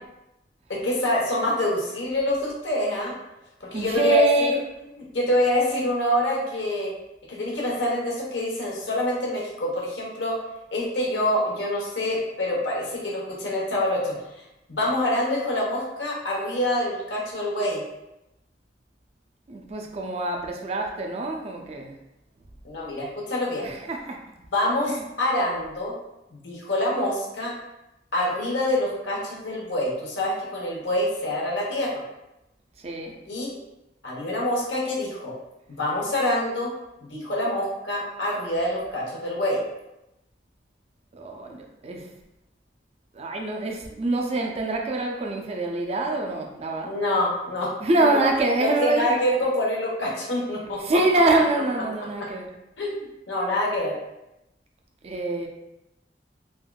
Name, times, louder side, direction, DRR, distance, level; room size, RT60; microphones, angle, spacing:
voice 1, 0.7-3.1 3.6-4.2 5.1-6.9 7.3-10.3 10.7-14.1 14.7-17.8 22.6-23.7 24.5-25.9 26.4-27.5 28.1-32.0 33.3-33.5 34.0-35.3 35.7-36.7 37.0-39.6 46.8-47.8 48.0-48.3 48.6-50.8 52.8-52.9 53.3-54.0, left 1 dB, 90° left, -3 dB, 0.8 m, -26 dB
voice 2, 3.7-4.6 19.5-21.9 23.6-24.2 24.9-25.0 32.8-33.2 41.1-42.1 43.1-46.9 47.8-49.2 50.8-52.5 55.0-55.5, right 2 dB, 35° right, 2 dB, 0.4 m, -25 dB
3.4 x 2.4 x 2.2 m, 0.91 s
head